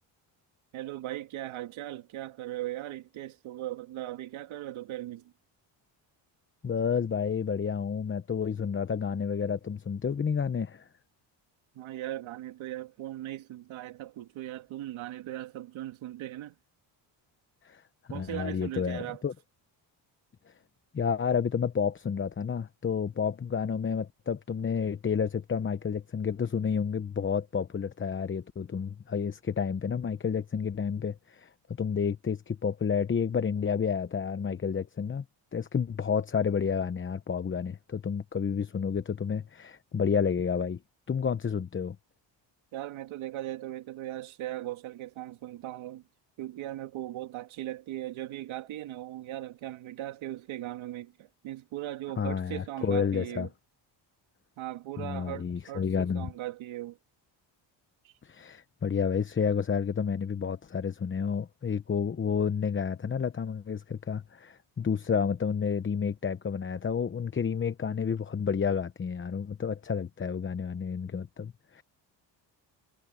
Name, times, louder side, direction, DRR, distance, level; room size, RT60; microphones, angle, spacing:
voice 1, 0.7-5.3 11.8-16.5 18.1-19.2 42.7-46.0 46.4-53.5 54.6-57.0 58.0-58.1, right 14 dB, 80° right, 2.1 m, -38 dB
voice 2, 6.6-10.9 17.6-17.8 18.1-19.3 20.9-31.5 31.8-35.2 35.5-40.8 41.1-42.0 52.2-53.5 55.0-56.3 58.2-71.8, left 6 dB, 25° left, 0.9 m, -30 dB
cardioid pair, 105°, 47 cm